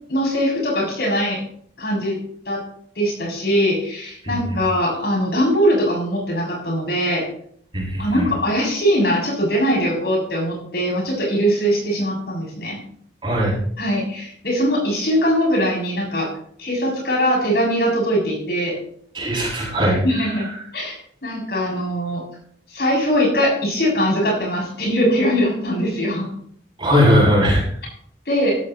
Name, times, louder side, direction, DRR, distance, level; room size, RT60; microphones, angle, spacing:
voice 1, 0.1-1.4 1.8-2.2 2.5-2.6 3.0-7.3 8.0-12.8 13.8-16.3 16.6-18.7 20.0-22.2 22.7-26.3 28.3-28.6, equal, 60° left, -2 dB, 7.4 m, -21 dB
voice 2, 4.2-4.6 7.7-8.3 13.2-13.6 19.1-20.0 26.8-27.6, equal, 25° right, -4 dB, 7.0 m, -18 dB
15.5 x 15.0 x 3.1 m, 0.62 s
head